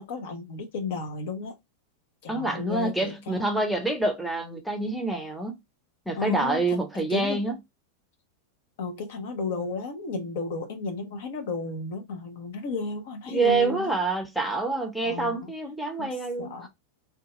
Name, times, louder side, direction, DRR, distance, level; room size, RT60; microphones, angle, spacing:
voice 1, 0.0-1.5 2.2-3.4 6.2-6.8 7.1-7.4 8.8-13.9 15.0-15.5 16.0-16.1 16.4-16.7, left 3 dB, 55° left, 0.7 m, -33 dB
voice 2, 2.3-5.6 6.1-7.5 13.3-16.7, right 2 dB, ahead, 0.7 m, -27 dB
2.7 x 2.3 x 3.8 m
figure-of-eight pair, 90°, 0 cm